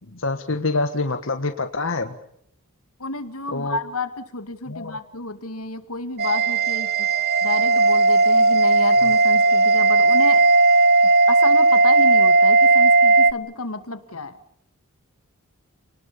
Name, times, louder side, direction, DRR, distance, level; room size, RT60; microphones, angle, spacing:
voice 1, 0.2-2.2 3.5-3.8 4.7-5.0, left 3 dB, 65° left, 6 dB, 1.7 m, -26 dB
voice 2, 3.0-6.9 7.4-10.4 11.3-14.3, left 3 dB, 85° left, 9 dB, 2.4 m, -30 dB
sound 1, 6.2-13.3, right 3 dB, 50° right, 1.2 m, -16 dB
29.5 x 20.0 x 7.0 m, 0.70 s
head